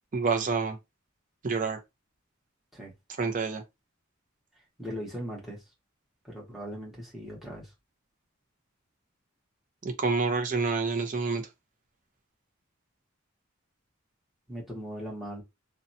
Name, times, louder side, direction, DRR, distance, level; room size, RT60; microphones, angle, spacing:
voice 1, 0.1-0.8 1.4-1.8 3.2-3.6 9.8-11.4, right 4 dB, 40° right, 0.5 m, -28 dB
voice 2, 4.8-5.6 6.2-7.7 14.5-15.4, equal, ahead, 1.1 m, -39 dB
2.6 x 2.2 x 2.6 m
head